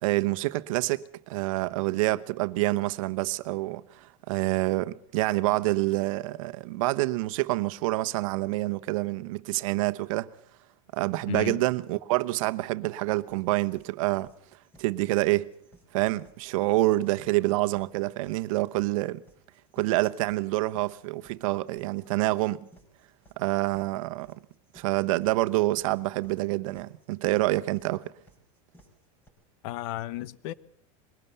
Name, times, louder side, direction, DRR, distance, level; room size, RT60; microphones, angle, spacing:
voice 1, 0.0-10.3 10.9-14.3 14.8-15.5 15.9-19.2 19.7-22.6 23.4-24.4 24.7-28.1, right 19 dB, 75° right, 1.0 m, -27 dB
voice 2, 11.3-11.6 29.6-30.5, left 15 dB, 65° left, 1.0 m, -33 dB
sound 1, 13.3-29.3, right 1 dB, 10° left, 5.2 m, -59 dB
22.0 x 18.5 x 6.9 m
supercardioid pair, 150°, 17 cm